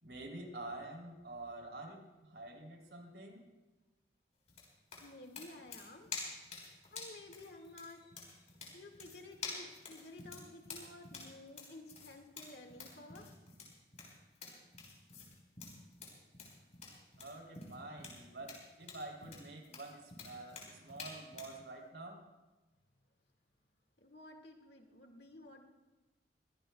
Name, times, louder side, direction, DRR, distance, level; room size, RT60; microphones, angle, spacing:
voice 1, 0.0-3.4 17.2-22.2, right 2 dB, 70° right, 2 dB, 3.3 m, -48 dB
sound 1, 4.5-21.6, left 4 dB, 40° left, 4.2 m, -49 dB
voice 2, 4.9-6.2 6.9-13.4 24.0-25.6, left 2 dB, 65° left, 4 dB, 2.0 m, -53 dB
23.0 x 17.0 x 2.3 m, 1.2 s
head